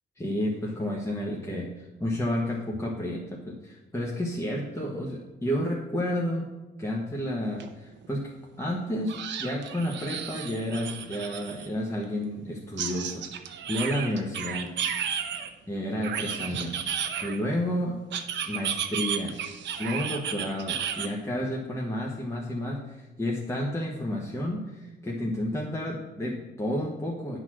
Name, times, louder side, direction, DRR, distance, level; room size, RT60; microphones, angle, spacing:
voice 1, 0.2-6.5 6.8-14.7 15.2-15.3 15.7-16.8 17.2-17.9 18.4-19.4 19.8-27.4, left 1 dB, 15° left, -2 dB, 1.2 m, -31 dB
sound 1, 7.6-7.7 8.0-8.1 9.1-11.7 12.8-15.5 16.0-17.6 18.1-21.1, right 8 dB, 65° right, 0.8 m, -33 dB
9.5 x 4.1 x 6.1 m, 1.1 s
cardioid pair, 90°, 20 cm